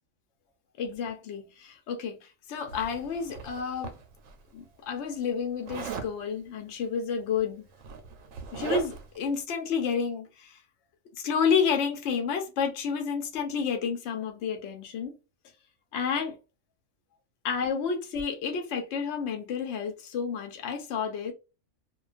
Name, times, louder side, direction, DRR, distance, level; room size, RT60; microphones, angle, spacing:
voice 1, 0.8-2.2 2.5-3.9 4.5-7.7 8.5-10.6 11.2-15.1 15.9-16.3 17.4-21.3, left 6 dB, 65° left, 0.8 m, -30 dB
Zipper (clothing), 2.7-4.3 5.7-6.1 7.3-7.4 7.7-9.2, right 6 dB, 85° right, 1.0 m, -37 dB
2.4 x 2.2 x 2.4 m
omnidirectional pair, 1.3 m